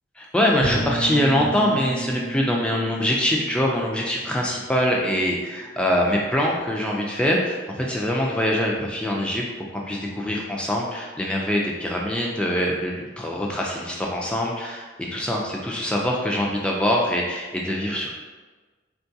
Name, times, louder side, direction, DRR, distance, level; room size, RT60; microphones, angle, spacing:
voice 1, 0.2-9.5 9.7-18.1, equal, 5° left, -2 dB, 0.3 m, -24 dB
Bowed string instrument, 0.6-5.4, right 2 dB, 85° left, 1.0 m, -33 dB
3.7 x 2.3 x 2.7 m, 1.3 s
head